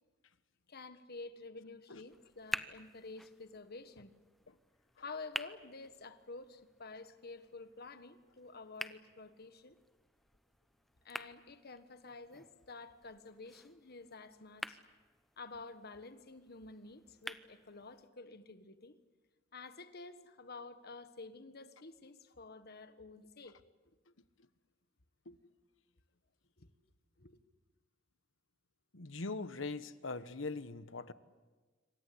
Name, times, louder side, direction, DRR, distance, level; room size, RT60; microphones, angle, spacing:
voice 1, 0.7-4.1 4.9-9.8 11.0-14.8 15.4-18.9 19.5-23.6 26.6-26.7 27.2-27.4, left 3 dB, 55° left, 1.5 m, -50 dB
sound 1, 2.1-18.1, equal, ahead, 0.9 m, -49 dB
voice 2, 28.9-31.1, left 3 dB, 70° left, 1.3 m, -41 dB
27.0 x 25.0 x 8.6 m
head